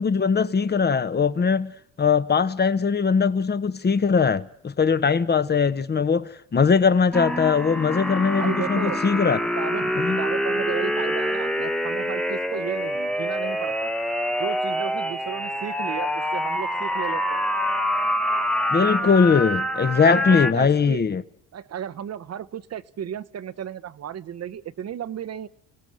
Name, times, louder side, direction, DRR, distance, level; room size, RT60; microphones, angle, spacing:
voice 1, 0.0-1.7 2.0-9.4 10.0-10.2 18.7-21.2, left 5 dB, 30° left, 1.1 m, -21 dB
sound 1, 7.1-20.5, equal, ahead, 1.1 m, -26 dB
voice 2, 8.3-9.2 9.5-13.9 14.4-17.5 20.0-21.0 21.5-25.5, right 9 dB, 45° right, 1.0 m, -34 dB
29.5 x 17.0 x 6.4 m
supercardioid pair, 80°, 35 cm